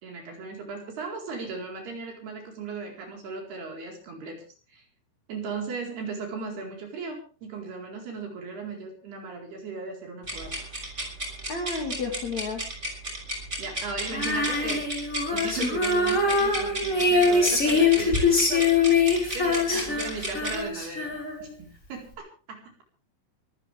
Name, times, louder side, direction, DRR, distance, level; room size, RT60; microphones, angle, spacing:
voice 1, 0.0-4.4 4.7-4.8 5.3-10.5 13.6-14.8 15.3-18.7 19.3-22.8, right 4 dB, 55° right, 1 dB, 6.0 m, -37 dB
sound 1, 10.2-20.6, right 1 dB, 15° right, 6.1 m, -33 dB
voice 2, 11.5-12.6 19.7-20.1, left 3 dB, 45° left, 2 dB, 2.8 m, -32 dB
Female singing, 14.1-21.6, left 4 dB, 15° left, 5.0 m, -23 dB
24.5 x 14.5 x 3.5 m, 0.37 s
omnidirectional pair, 5.8 m